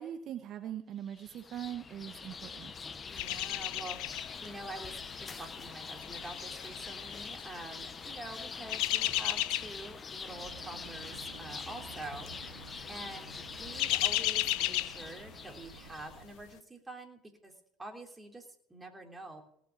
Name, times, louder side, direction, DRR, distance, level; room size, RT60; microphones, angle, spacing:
voice 1, 0.0-2.7, right 10 dB, 55° right, 7 dB, 1.0 m, -41 dB
sound 1, 1.1-16.2, left 5 dB, 30° left, 1.0 m, -44 dB
voice 2, 3.1-17.5 17.8-19.4, right 2 dB, 15° right, 2 dB, 3.3 m, -47 dB
sound 2, 3.2-4.5 4.8-5.1 5.8-7.4 8.4-9.9 10.3-10.6 10.8-11.0 11.9-12.3 12.7-12.8 13.3-15.6 16.0-16.1, left 17 dB, 70° left, 0.6 m, -33 dB
sound 3, 10.3-16.2, right 7 dB, 85° right, 1.7 m, -52 dB
18.5 x 6.2 x 7.4 m, 0.75 s
hypercardioid pair, 80°, 0 cm